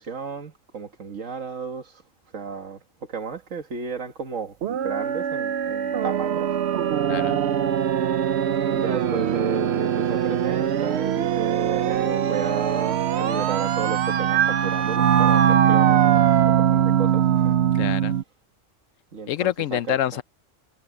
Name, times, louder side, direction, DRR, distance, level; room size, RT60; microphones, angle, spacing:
voice 1, 0.0-2.0 2.3-6.5 8.7-17.6 19.1-20.2, right 5 dB, 85° right, 2.0 m, -33 dB
sound 1, 4.6-18.2, right 9 dB, 65° right, 0.9 m, -22 dB
voice 2, 7.1-7.4 17.7-18.2 19.3-20.2, left 11 dB, 85° left, 1.0 m, -26 dB
omnidirectional pair, 1.3 m